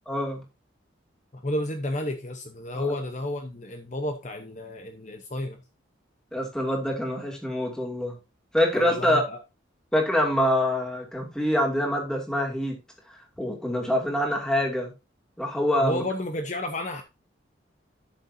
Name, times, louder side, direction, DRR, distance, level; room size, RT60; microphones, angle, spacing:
voice 1, 0.1-0.4 2.7-2.9 6.3-8.2 8.5-9.2 9.9-12.8 13.4-14.9 15.4-16.0, left 1 dB, 5° left, 0 dB, 2.5 m, -25 dB
voice 2, 1.3-5.6 8.7-9.4 15.8-17.0, left 1 dB, 40° left, 5 dB, 0.9 m, -31 dB
12.5 x 6.7 x 2.7 m, 0.27 s
head